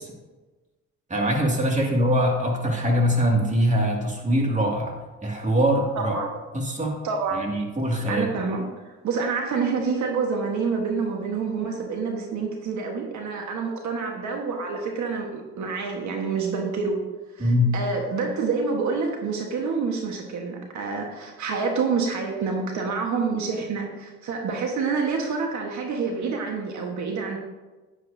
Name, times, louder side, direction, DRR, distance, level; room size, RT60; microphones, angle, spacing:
voice 1, 1.1-4.9 5.2-6.1 6.5-7.0 7.3-8.3 17.4-17.7, equal, 25° right, 0 dB, 2.4 m, -23 dB
voice 2, 5.9-6.3 7.0-7.4 8.1-17.0 17.3-27.4, right 4 dB, 70° right, 1 dB, 1.4 m, -27 dB
10.5 x 9.8 x 2.7 m, 1.2 s
cardioid pair, 90°, 30 cm